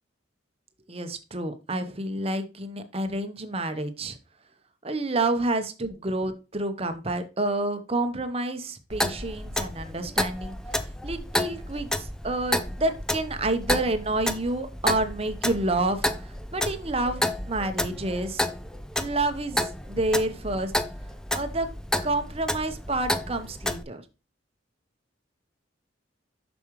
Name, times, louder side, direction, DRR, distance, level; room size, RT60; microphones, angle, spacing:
voice 1, 0.9-4.2 4.8-18.5 19.0-20.7 21.3-21.7 22.0-24.0, right 2 dB, 30° right, 8 dB, 0.9 m, -29 dB
Clock, 8.9-23.8, left 1 dB, 5° left, 0.4 m, -31 dB
7.2 x 6.2 x 3.1 m, 0.30 s
head